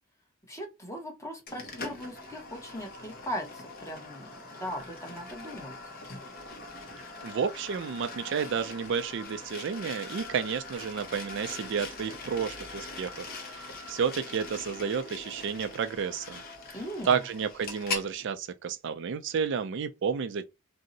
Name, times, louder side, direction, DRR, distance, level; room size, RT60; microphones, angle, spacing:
voice 1, 0.5-5.7 16.7-17.2, equal, 15° left, 0.8 m, -39 dB
sound 1, 1.5-18.1, left 3 dB, 45° left, 0.8 m, -42 dB
voice 2, 7.2-16.4 17.1-20.4, right 6 dB, 60° right, 0.4 m, -31 dB
2.7 x 2.0 x 3.7 m
head